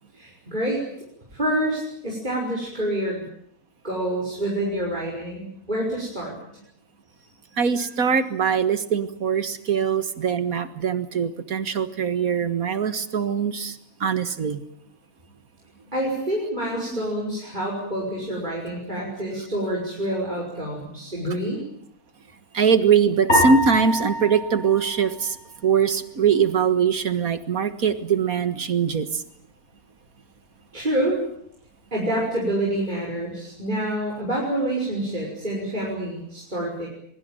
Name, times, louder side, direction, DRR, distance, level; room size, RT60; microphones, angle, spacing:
voice 1, 0.1-0.8 1.3-3.2 3.8-6.4 15.9-21.6 30.7-31.2 31.9-36.9, right 1 dB, 30° right, -3 dB, 6.1 m, -27 dB
voice 2, 7.6-14.6 16.9-17.0 22.5-25.4 25.6-29.2, right 6 dB, 65° right, 11 dB, 2.0 m, -22 dB
sound 1, 23.3-25.8, equal, 45° left, 8.2 m, -25 dB
23.0 x 22.5 x 9.0 m, 0.70 s
omnidirectional pair, 1.6 m